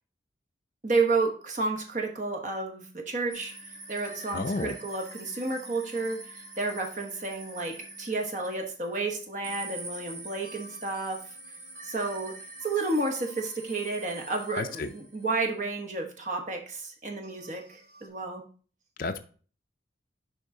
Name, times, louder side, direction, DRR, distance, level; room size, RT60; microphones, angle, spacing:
voice 1, 0.8-3.5 3.9-11.3 11.8-18.4, right 3 dB, 40° right, 1.1 m, -31 dB
sound 1, 3.3-9.1 9.4-15.5 17.2-18.1, right 2 dB, 70° right, 2.2 m, -45 dB
voice 2, 4.3-4.8 14.5-14.9 19.0-19.2, left 3 dB, 50° left, 0.5 m, -31 dB
6.7 x 5.3 x 3.7 m
head